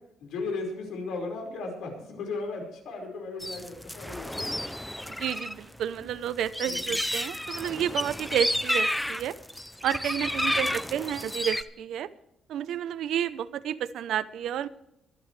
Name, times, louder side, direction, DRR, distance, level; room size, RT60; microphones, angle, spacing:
voice 1, 0.2-4.6 6.6-7.0, left 3 dB, 85° left, 2 dB, 5.1 m, -36 dB
sound 1, 3.4-5.5 5.8-11.6, left 1 dB, 5° left, 0.5 m, -31 dB
voice 2, 5.2-9.4 9.8-12.1 12.5-14.7, right 10 dB, 70° right, 15 dB, 0.7 m, -30 dB
24.0 x 11.5 x 3.3 m, 0.81 s
cardioid pair, 180°, 0 cm